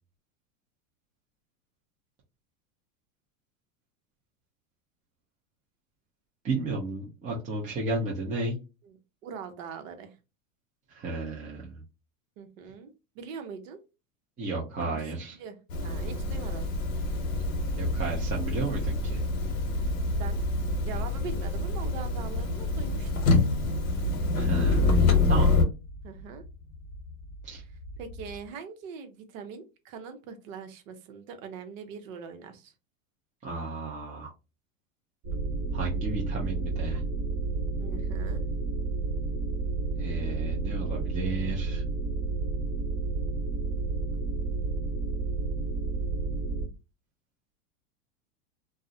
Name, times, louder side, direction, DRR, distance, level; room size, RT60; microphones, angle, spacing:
voice 1, 6.4-8.6 10.9-11.8 14.4-15.4 17.8-19.2 24.3-25.0 25.3-25.6 27.4-27.6 33.4-34.3 35.7-37.0 40.0-41.8, right 3 dB, 20° right, -3 dB, 0.6 m, -33 dB
voice 2, 9.2-10.1 12.4-13.8 14.8-15.0 15.4-15.6 15.8-16.8 20.2-20.4 20.8-23.1 26.0-26.4 28.0-32.7 37.8-38.4, right 6 dB, 70° right, 7 dB, 0.7 m, -42 dB
sound 1, 15.7-25.6, left 3 dB, 85° left, 0.8 m, -26 dB
sound 2, 17.3-28.5, left 1 dB, 40° left, 0.6 m, -42 dB
sound 3, 35.2-46.7, right 3 dB, 45° right, 1.1 m, -31 dB
2.4 x 2.0 x 2.6 m, 0.28 s
hypercardioid pair, 115°, 41 cm